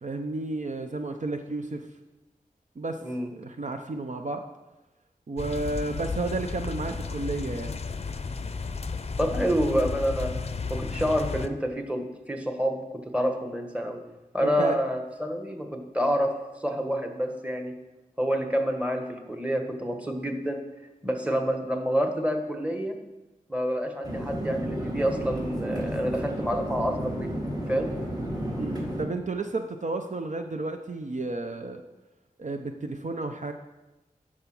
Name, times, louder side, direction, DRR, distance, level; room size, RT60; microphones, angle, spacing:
voice 1, 0.0-1.8 2.8-3.0 3.3-4.4 5.3-7.8 14.4-14.8 28.6-31.8 32.4-33.5, right 2 dB, 55° right, 5 dB, 0.6 m, -32 dB
sound 1, 5.4-11.5, left 4 dB, 45° left, 0.5 m, -33 dB
voice 2, 9.2-10.3 10.7-14.0 14.3-16.3 16.6-17.7 18.2-20.6 21.0-22.9 23.5-27.4 27.7-27.9, equal, 10° right, 4 dB, 1.3 m, -28 dB
sound 2, 24.0-29.0, right 1 dB, 25° right, 2.1 m, -32 dB
10.5 x 5.0 x 6.0 m, 1.0 s
wide cardioid pair, 60°, 15 cm